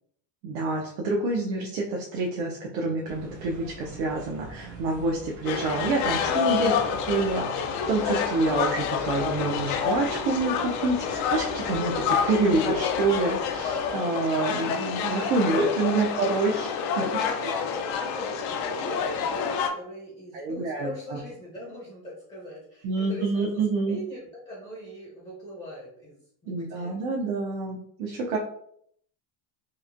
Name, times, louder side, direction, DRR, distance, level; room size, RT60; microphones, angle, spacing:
voice 1, 0.4-6.7 7.1-16.7 17.1-17.2 20.3-21.2 22.8-24.0 26.5-28.4, right 3 dB, 80° right, -1 dB, 0.7 m, -27 dB
sound 1, 3.1-13.9, right 2 dB, 45° right, 0.6 m, -44 dB
sound 2, 5.4-19.7, left 7 dB, 70° left, 0.5 m, -28 dB
voice 2, 16.8-23.6 23.9-27.0, equal, 15° left, -5 dB, 0.5 m, -40 dB
3.0 x 2.1 x 2.4 m, 0.67 s
cardioid pair, 135°, 49 cm